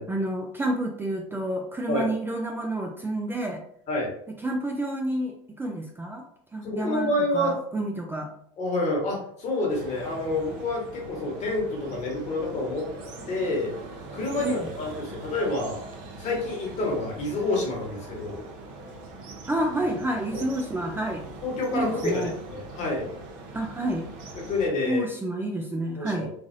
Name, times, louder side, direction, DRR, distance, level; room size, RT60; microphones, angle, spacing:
voice 1, 0.1-3.6 4.3-6.2 6.5-8.3 14.4-14.7 19.5-21.2 21.7-22.3 23.5-24.1 24.9-26.3, right 1 dB, 15° right, 2 dB, 0.4 m, -29 dB
voice 2, 6.6-7.6 8.6-12.9 13.3-13.7 14.1-15.8 16.2-18.4 21.4-23.1 24.3-25.1 26.0-26.3, left 2 dB, 45° left, -2 dB, 1.4 m, -28 dB
sound 1, 9.7-24.7, right 2 dB, 60° right, 0.8 m, -42 dB
3.2 x 2.3 x 2.6 m, 0.68 s
hypercardioid pair, 90°, 16 cm